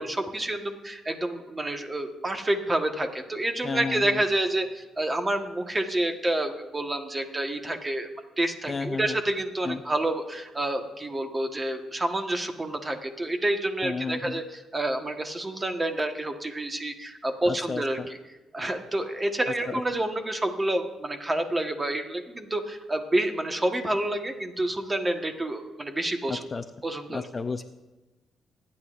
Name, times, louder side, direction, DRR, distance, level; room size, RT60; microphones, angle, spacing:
voice 1, 0.0-8.1 8.4-18.2 18.5-26.4 26.8-27.2, right 1 dB, 20° right, 5 dB, 1.3 m, -28 dB
voice 2, 3.6-4.2 8.7-9.2 9.6-9.8 13.8-14.4 17.4-18.1 19.5-19.8 26.3-26.6 27.1-27.6, left 4 dB, 30° left, 8 dB, 0.5 m, -32 dB
25.0 x 9.8 x 2.5 m, 1.1 s
cardioid pair, 90°, 0 cm